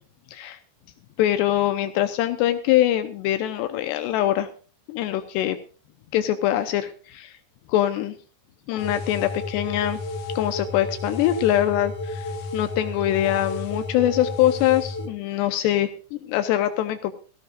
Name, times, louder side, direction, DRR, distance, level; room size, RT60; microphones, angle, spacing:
voice 1, 0.3-0.6 1.2-4.5 4.9-5.6 6.1-7.4 7.7-8.2 8.7-10.0 10.4-17.1, left 13 dB, 80° left, 9 dB, 3.0 m, -23 dB
sound 1, 8.8-15.1, left 2 dB, 50° left, 2.1 m, -32 dB
19.5 x 16.5 x 2.5 m, 0.38 s
omnidirectional pair, 4.9 m